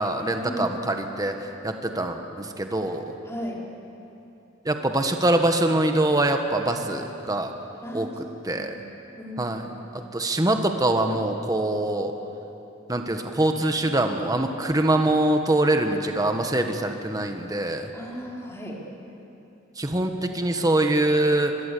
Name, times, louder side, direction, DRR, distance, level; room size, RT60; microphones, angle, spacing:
voice 1, 0.0-3.0 4.6-7.5 7.9-8.7 9.4-12.1 12.9-17.9 19.8-21.5, right 1 dB, 20° right, 5 dB, 1.4 m, -24 dB
voice 2, 3.2-3.6 7.8-8.2 8.5-8.8 9.2-9.9 17.9-18.8, equal, 15° left, -3 dB, 4.2 m, -36 dB
24.0 x 22.5 x 8.5 m, 2.8 s
head